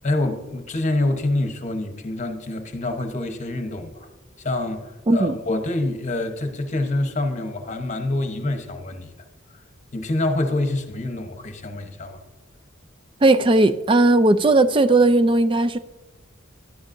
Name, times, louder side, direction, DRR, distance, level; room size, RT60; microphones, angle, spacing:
voice 1, 0.0-4.1 4.4-9.1 9.9-12.2, left 2 dB, 35° left, 6 dB, 1.0 m, -26 dB
voice 2, 13.2-15.8, right 2 dB, 25° right, 11 dB, 0.4 m, -17 dB
12.0 x 10.0 x 2.6 m, 1.1 s
head